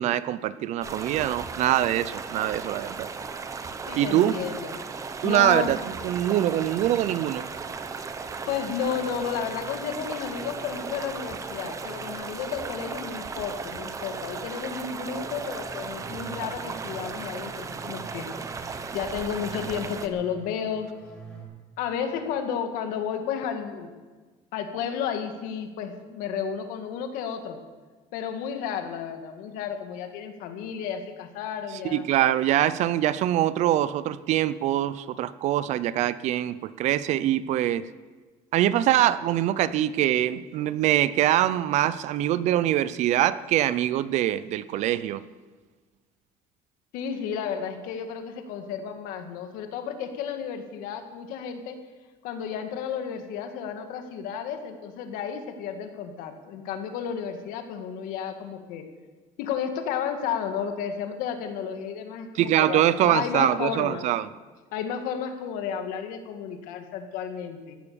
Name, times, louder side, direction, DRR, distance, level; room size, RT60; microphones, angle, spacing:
voice 1, 0.0-3.1 4.0-4.4 5.2-7.4 31.8-37.9 38.5-45.2 62.4-64.3, right 12 dB, 55° right, 17 dB, 0.6 m, -24 dB
sound 1, 0.8-20.1, right 4 dB, 20° right, 1.0 m, -36 dB
voice 2, 3.9-4.8 5.2-5.7 8.5-18.3 18.9-20.9 21.8-23.9 24.5-27.6 28.1-32.1 46.9-51.8 52.2-58.9 59.4-64.1 64.7-67.8, left 7 dB, 75° left, 6 dB, 2.0 m, -32 dB
sound 2, 15.9-21.4, right 5 dB, 5° left, 6.2 m, -45 dB
15.5 x 11.5 x 7.0 m, 1.4 s
cardioid pair, 145°, 14 cm